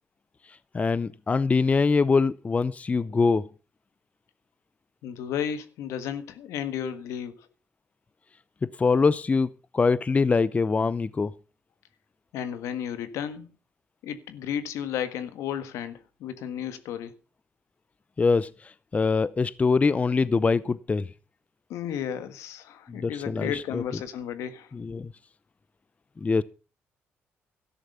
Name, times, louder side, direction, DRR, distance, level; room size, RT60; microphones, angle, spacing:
voice 1, 0.7-3.5 8.8-11.3 18.2-18.5 18.9-21.1 22.9-23.8 24.7-25.1 26.2-26.4, left 4 dB, 30° left, 0.6 m, -23 dB
voice 2, 5.0-7.5 12.3-13.5 14.0-17.1 21.7-24.7, left 9 dB, 90° left, 1.6 m, -33 dB
13.0 x 10.5 x 5.6 m
cardioid pair, 85°, 5 cm